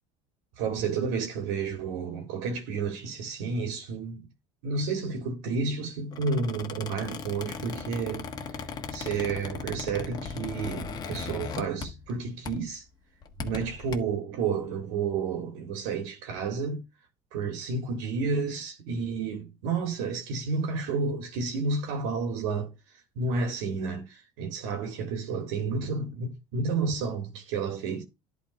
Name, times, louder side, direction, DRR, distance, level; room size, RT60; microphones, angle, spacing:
voice 1, 0.6-4.3 4.6-12.9 13.4-16.8 17.3-28.0, right 4 dB, 80° right, 2.2 m, -31 dB
Squeak, 6.1-12.2 12.4-12.7 13.2-13.9, left 5 dB, 25° left, 1.3 m, -38 dB
11.5 x 4.1 x 4.4 m
cardioid pair, 165°, 15 cm